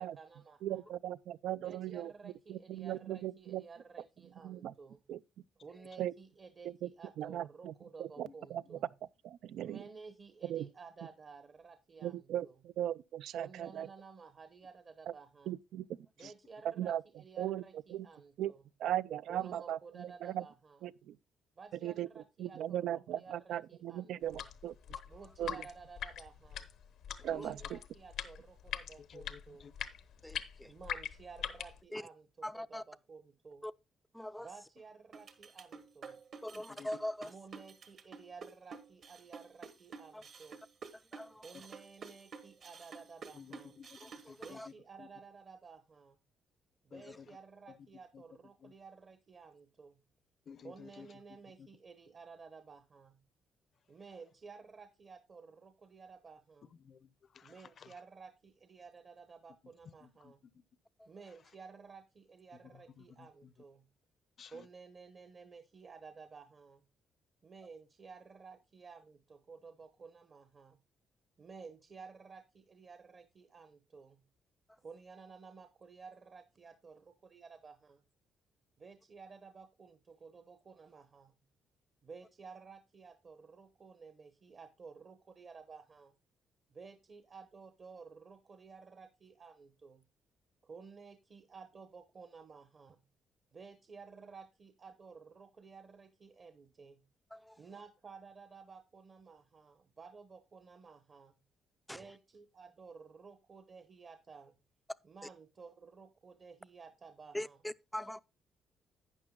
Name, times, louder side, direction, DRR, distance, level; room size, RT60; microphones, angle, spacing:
voice 1, 0.0-0.9 1.6-5.1 5.6-8.9 9.6-12.6 13.3-15.5 16.2-18.7 19.3-20.8 21.6-22.8 23.1-24.5 25.1-26.7 27.2-29.8 30.6-33.7 34.4-36.2 36.5-36.6 37.2-40.6 41.4-43.7 44.4-46.3 46.8-50.1 50.6-53.2 53.9-56.7 57.4-60.5 61.1-63.9 64.5-66.8 67.4-70.8 71.4-74.3 74.8-78.0 78.8-81.4 82.0-86.1 86.7-90.1 90.6-93.1 93.5-97.1 97.6-101.4 101.9-104.6 105.0-107.6, right 5 dB, 45° right, 0.9 m, -54 dB
voice 2, 0.6-3.6 4.4-4.7 5.1-5.2 6.0-6.1 6.6-6.9 7.2-7.7 8.0-8.8 9.2-9.8 10.4-10.7 12.0-13.9 15.1-15.2 15.5-15.9 16.2-16.3 16.6-17.0 17.4-17.6 17.9-18.1 18.4-18.5 18.8-20.4 20.8-21.2 21.8-24.7 25.4-25.6 27.2-27.8, right 12 dB, 80° right, 0.3 m, -38 dB
voice 3, 8.2-8.6 16.2-16.3 27.2-27.7 29.0-29.7 36.7-37.0 41.5-41.7 43.3-44.7 45.0-45.1 46.9-47.4 47.7-47.9 48.1-48.2 48.6-48.7 50.5-51.2 51.6-51.7 56.7-57.9 60.0-60.6 61.3-61.5 62.5-63.7 64.4-64.7, left 6 dB, 55° left, 0.6 m, -55 dB
Water-drop, 24.2-31.8, left 9 dB, 80° left, 0.9 m, -43 dB
voice 4, 30.2-30.7 31.9-32.0 32.4-32.8 33.6-33.7 34.1-34.5 36.4-37.3 40.1-40.2 41.1-41.5 44.3-44.7 97.3-97.6 101.9-102.1 107.3-108.2, left 1 dB, 5° left, 0.4 m, -42 dB
sound 1, 35.1-44.6, right 5 dB, 60° right, 1.5 m, -50 dB
12.0 x 8.8 x 2.2 m
cardioid pair, 90°, 0 cm